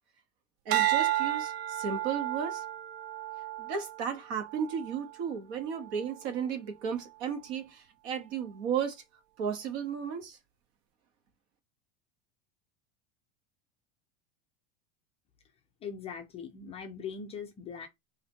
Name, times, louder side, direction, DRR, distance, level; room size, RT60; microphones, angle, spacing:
voice 1, 0.6-2.6 3.6-9.0 9.4-10.4, right 7 dB, 70° right, 1.4 m, -34 dB
sound 1, 0.7-5.2 5.7-6.1, right 13 dB, 55° right, 0.5 m, -32 dB
voice 2, 15.8-17.9, left 6 dB, 20° left, 0.3 m, -40 dB
4.2 x 2.7 x 3.9 m
supercardioid pair, 160°, 33 cm